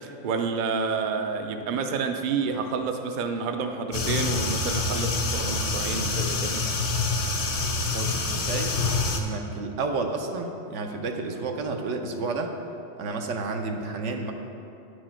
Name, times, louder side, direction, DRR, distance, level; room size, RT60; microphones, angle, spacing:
voice 1, 0.0-6.7, right 5 dB, 55° right, 5 dB, 0.6 m, -29 dB
sound 1, 3.9-9.2, left 3 dB, 40° left, 0.5 m, -26 dB
voice 2, 7.9-8.8 9.1-12.5 13.0-14.3, right 3 dB, 80° right, 4 dB, 1.0 m, -31 dB
9.5 x 4.7 x 4.4 m, 2.8 s
omnidirectional pair, 1.2 m